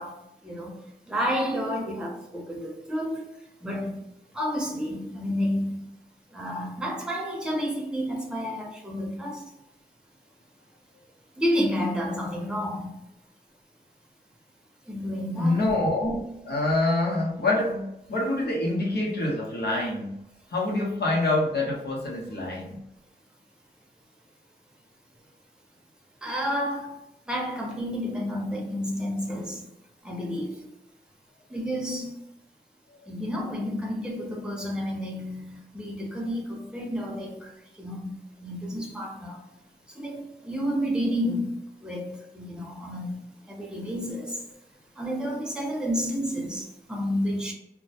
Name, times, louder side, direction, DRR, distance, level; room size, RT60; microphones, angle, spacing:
voice 1, 0.0-3.3 3.6-4.0 4.3-5.9 6.3-9.5 11.4-13.0 14.9-15.7 26.2-29.7 30.0-30.7 31.5-32.2 33.1-39.5 39.9-44.4 44.9-47.5, equal, 5° right, 0.7 m, -31 dB
voice 2, 15.4-20.2 20.5-22.8, left 2 dB, 80° left, 0.8 m, -26 dB
2.1 x 2.1 x 2.7 m
wide cardioid pair, 85°, 17 cm